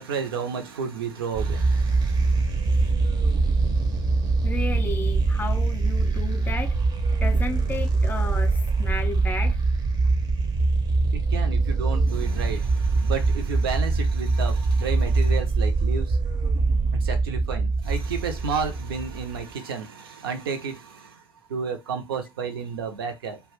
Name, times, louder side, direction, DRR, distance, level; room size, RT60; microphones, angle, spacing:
voice 1, 0.0-2.9 11.1-16.2 17.0-21.2 21.5-23.4, right 6 dB, 75° right, 0.6 m, -32 dB
sound 1, 1.3-19.4, right 3 dB, 35° right, 0.6 m, -23 dB
voice 2, 4.4-6.8 7.2-9.6, left 3 dB, 15° left, 0.5 m, -33 dB
2.4 x 2.2 x 3.2 m
figure-of-eight pair, 70°, 13 cm